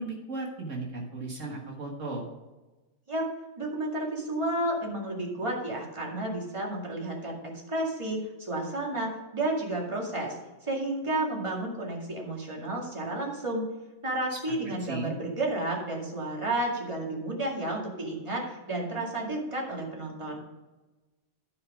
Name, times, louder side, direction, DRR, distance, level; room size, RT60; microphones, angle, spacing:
voice 1, 0.0-2.2 14.3-14.5 14.9-15.1, right 2 dB, 60° right, -1 dB, 1.8 m, -36 dB
voice 2, 3.6-10.3 10.6-13.7 14.0-20.4, right 1 dB, 20° right, -2 dB, 2.2 m, -31 dB
13.5 x 5.1 x 4.9 m, 1.2 s
omnidirectional pair, 1.5 m